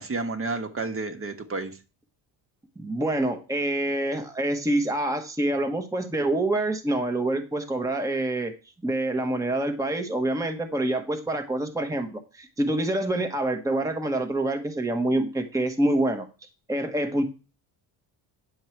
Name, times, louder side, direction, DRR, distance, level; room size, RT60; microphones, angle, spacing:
voice 1, 0.0-1.8, right 3 dB, 30° right, 7 dB, 1.4 m, -31 dB
voice 2, 2.8-8.5 8.8-16.3 16.7-17.2, right 1 dB, 5° right, 5 dB, 1.2 m, -26 dB
9.7 x 7.2 x 4.5 m, 0.32 s
cardioid pair, 125°, 45 cm